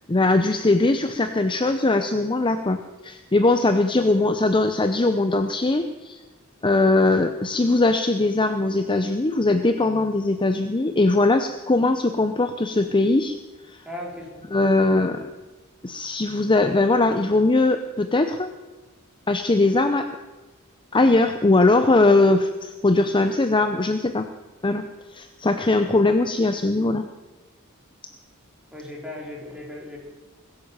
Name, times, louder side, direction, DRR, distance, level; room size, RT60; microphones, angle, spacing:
voice 1, 0.1-6.2 6.6-13.4 13.7-13.8 14.5-15.3 15.8-18.5 19.3-20.1 20.9-24.3 24.6-24.8 25.1-27.0, left 2 dB, 20° left, 8 dB, 0.7 m, -20 dB
voice 2, 13.8-14.6 28.7-30.0, left 1 dB, 5° right, -3 dB, 4.4 m, -37 dB
21.0 x 8.9 x 7.4 m, 1.2 s
head